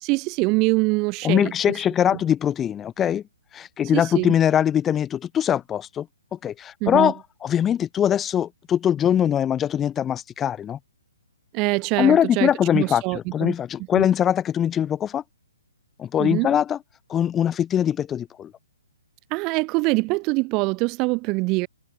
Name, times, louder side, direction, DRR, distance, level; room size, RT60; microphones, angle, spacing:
voice 1, 0.0-1.5 3.9-4.3 6.8-7.1 11.5-13.5 13.9-14.0 16.2-16.5 19.3-21.7, right 26 dB, 25° right, 1.4 m, -24 dB
voice 2, 1.2-3.2 3.5-6.1 6.3-10.8 12.0-15.2 16.0-16.8 17.1-18.5, left 9 dB, 15° left, 2.2 m, -22 dB
figure-of-eight pair, 125°, 0 cm